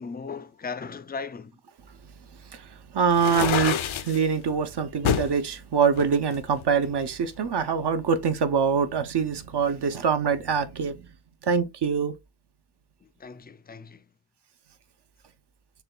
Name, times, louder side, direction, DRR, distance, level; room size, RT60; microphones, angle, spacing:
voice 1, 0.0-1.6 13.0-14.1, left 5 dB, 25° left, 0.3 m, -37 dB
voice 2, 2.4-11.0 11.4-12.1, right 6 dB, 60° right, 0.6 m, -24 dB
sound 1, 3.1-4.2 5.0-5.3 5.9-7.0, left 9 dB, 80° left, 0.6 m, -27 dB
6.6 x 2.2 x 2.2 m
wide cardioid pair, 70°, 47 cm